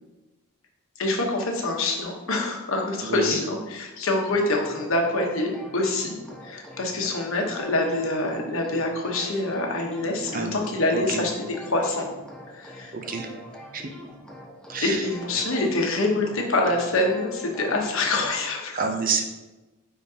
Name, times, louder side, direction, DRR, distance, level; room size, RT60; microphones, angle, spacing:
voice 1, 1.0-6.1 6.4-11.3 11.6-12.1 12.5-12.9 14.8-18.8, left 2 dB, 65° left, 1 dB, 1.1 m, -25 dB
voice 2, 3.0-3.4 10.3-10.6 10.9-11.2 12.9-13.3 13.7-13.9 14.7-15.1 15.3-15.4 18.7-19.2, right 5 dB, 40° right, 5 dB, 0.5 m, -28 dB
sound 1, 4.3-18.3, equal, 5° left, 0.7 m, -44 dB
9.1 x 3.8 x 2.8 m, 1.1 s
head